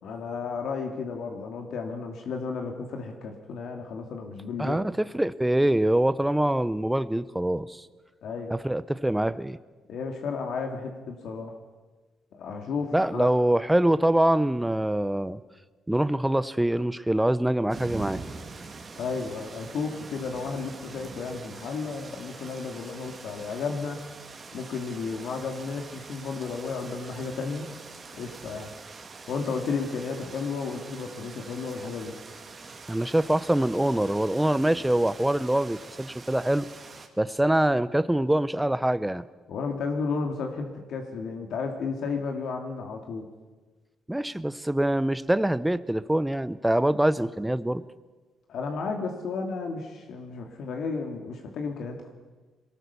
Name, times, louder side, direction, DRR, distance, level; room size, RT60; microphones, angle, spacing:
voice 1, 0.0-4.8 8.2-8.5 9.9-11.5 12.3-13.3 19.0-24.0 24.5-27.7 28.1-28.7 29.3-32.1 39.5-43.3 48.5-52.1, left 4 dB, 70° left, 3 dB, 2.3 m, -33 dB
voice 2, 4.6-7.8 8.5-9.6 12.9-15.4 15.9-18.2 32.9-36.7 37.2-39.2 44.1-47.8, right 1 dB, 5° right, 15 dB, 0.7 m, -24 dB
sound 1, 17.7-37.1, right 4 dB, 35° right, 2.5 m, -44 dB
22.5 x 18.0 x 7.0 m, 1.3 s
cardioid pair, 90°, 0 cm